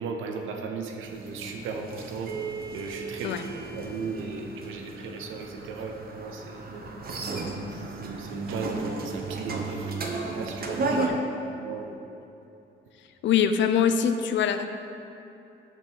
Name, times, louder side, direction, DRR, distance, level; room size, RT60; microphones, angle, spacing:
voice 1, 0.0-2.3 2.7-3.4 3.7-6.7 7.1-11.1 11.5-12.0, right 4 dB, 80° right, 3 dB, 0.9 m, -36 dB
sound 1, 1.1-11.1, right 3 dB, 50° right, 1.0 m, -34 dB
voice 2, 13.2-14.7, left 8 dB, 70° left, 9 dB, 0.5 m, -23 dB
6.0 x 5.4 x 6.2 m, 2.8 s
cardioid pair, 90°, 20 cm